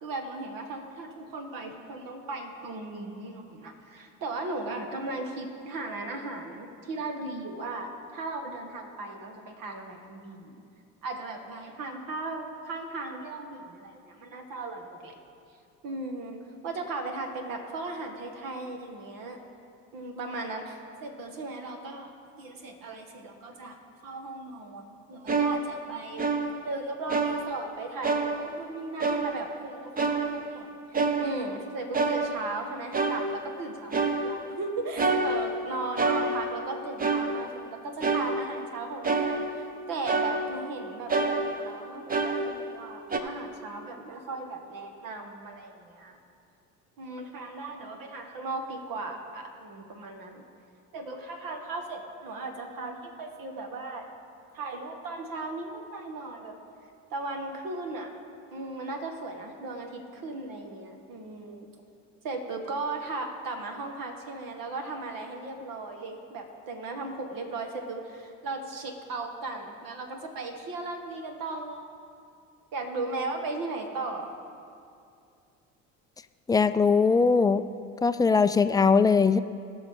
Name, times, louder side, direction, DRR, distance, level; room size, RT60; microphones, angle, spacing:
voice 1, 0.0-10.6 11.0-15.1 15.8-19.4 19.9-22.1 22.4-23.8 24.0-26.3 26.6-46.2 47.0-50.4 50.9-54.0 54.5-56.5 57.1-58.1 58.5-61.7 62.2-71.9 72.7-74.3, right 2 dB, 60° right, 4 dB, 1.8 m, -37 dB
sound 1, 25.3-26.8 27.1-27.8 28.0-28.7 29.0-29.6 30.0-31.6 31.9-32.7 32.9-33.6 33.9-34.6 35.0-36.7 37.0-37.7 38.0-38.7 39.0-39.8 40.0-40.8 41.1-42.8 43.1-43.2, right 3 dB, 20° right, 1.0 m, -28 dB
voice 2, 76.5-77.7 78.0-79.4, left 5 dB, 10° left, 11 dB, 0.4 m, -21 dB
18.5 x 6.2 x 3.8 m, 2.4 s
hypercardioid pair, 70°, 39 cm